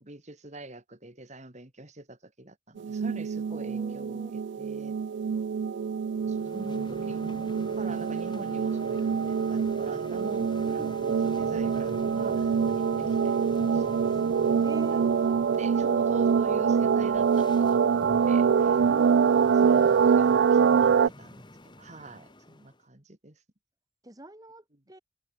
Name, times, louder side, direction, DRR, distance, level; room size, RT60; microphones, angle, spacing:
voice 1, 0.0-5.0 6.3-7.2 7.7-11.0 11.2-13.4 13.7-14.3 14.9-19.0 19.6-23.4, right 2 dB, 35° right, 2.2 m, -44 dB
sound 1, 2.8-21.1, right 6 dB, 60° right, 0.3 m, -25 dB
voice 2, 3.5-4.3 10.8-11.2 14.1-14.2 14.6-15.6 18.8-19.8 24.0-25.0, right 1 dB, 20° right, 1.9 m, -45 dB
sound 2, 6.2-22.8, left 1 dB, 20° left, 2.2 m, -46 dB
head